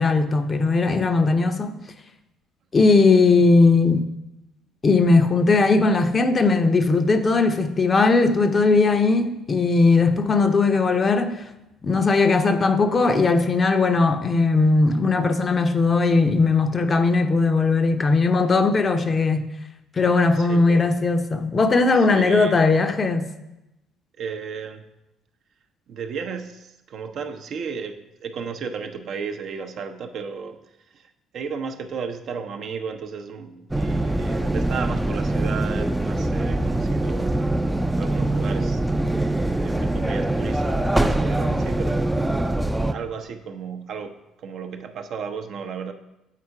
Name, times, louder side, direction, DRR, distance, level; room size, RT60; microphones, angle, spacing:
voice 1, 0.0-1.7 2.7-4.1 4.8-11.4 11.8-19.5 20.0-23.3, left 3 dB, 35° left, 0.6 m, -19 dB
voice 2, 20.1-20.9 21.2-21.3 21.9-22.6 24.2-24.8 25.9-30.6 30.9-37.4 38.0-39.2 39.6-42.1 42.7-45.9, right 6 dB, 55° right, 0.6 m, -34 dB
sound 1, 33.7-42.9, right 1 dB, 10° right, 0.4 m, -23 dB
7.5 x 4.3 x 4.7 m
figure-of-eight pair, 50°, 0 cm